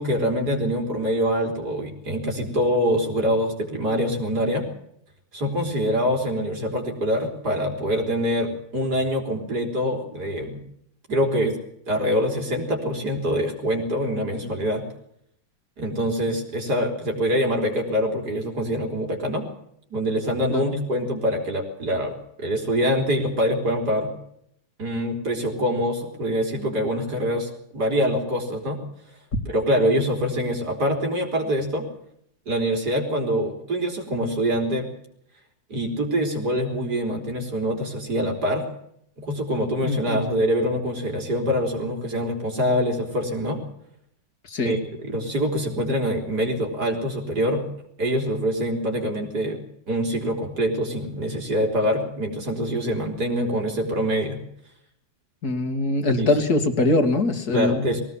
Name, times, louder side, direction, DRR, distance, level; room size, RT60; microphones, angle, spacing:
voice 1, 0.0-4.7 5.3-10.6 11.1-11.6 11.9-14.8 15.8-19.4 19.9-24.1 24.8-28.8 29.5-31.9 32.5-34.9 35.7-38.6 39.2-43.6 44.6-44.8 45.0-47.7 48.0-49.6 49.9-54.4 56.2-56.3 57.5-58.0, equal, 55° right, 2 dB, 4.3 m, -25 dB
voice 2, 39.8-40.2 44.4-44.8 55.4-57.9, left 2 dB, 50° left, 8 dB, 2.9 m, -23 dB
21.5 x 17.5 x 7.2 m, 0.72 s
omnidirectional pair, 2.1 m